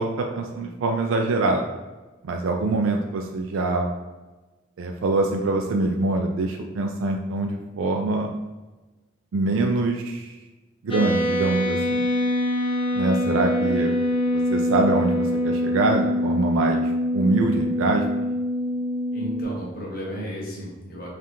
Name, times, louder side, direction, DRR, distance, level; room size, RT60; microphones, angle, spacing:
voice 1, 0.0-1.6 2.2-3.9 4.8-8.3 9.3-10.3 10.8-12.1 12.9-14.0 14.5-18.1, right 2 dB, 70° right, 2 dB, 0.3 m, -24 dB
sound 1, 10.9-19.4, left 1 dB, 25° left, 0.5 m, -24 dB
voice 2, 19.1-21.1, equal, 45° left, -3 dB, 1.1 m, -33 dB
3.6 x 2.4 x 4.3 m, 1.2 s
head